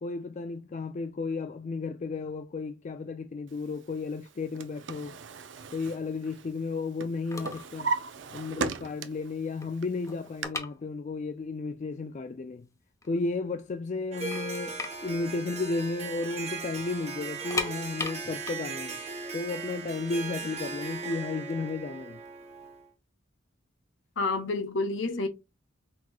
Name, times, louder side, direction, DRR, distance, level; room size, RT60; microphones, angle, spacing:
voice 1, 0.0-5.2 5.7-7.9 8.3-12.7 13.1-19.0 19.3-22.2, left 3 dB, 40° left, 0.3 m, -33 dB
Drawer open or close, 4.2-6.7 7.0-9.3 9.8-10.4, right 4 dB, 65° right, 0.5 m, -36 dB
sound 1, 7.3-7.8 8.0-8.3 8.8-8.9 9.1-11.4 11.7-11.8 12.4-12.5 12.9-13.6 13.9-14.0 14.3-16.3 16.6-16.7 17.3-20.2 20.9-22.6, left 3 dB, 15° left, 0.7 m, -38 dB
Harp, 14.1-22.9, right 4 dB, 35° right, 1.0 m, -38 dB
voice 2, 24.2-25.3, left 3 dB, 70° left, 1.1 m, -29 dB
5.9 x 3.0 x 2.3 m
head